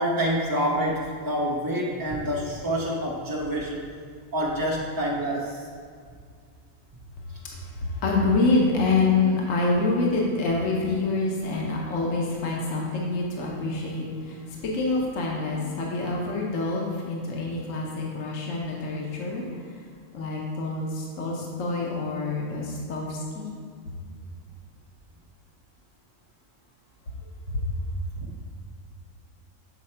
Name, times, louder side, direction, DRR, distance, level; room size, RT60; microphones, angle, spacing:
voice 1, 0.0-3.8 4.3-5.6, equal, 30° right, -4 dB, 0.4 m, -27 dB
voice 2, 8.0-14.4 14.6-19.4 20.1-23.5 27.5-27.6, left 3 dB, 65° left, -2 dB, 1.2 m, -26 dB
7.3 x 4.7 x 4.3 m, 2.1 s
omnidirectional pair, 1.5 m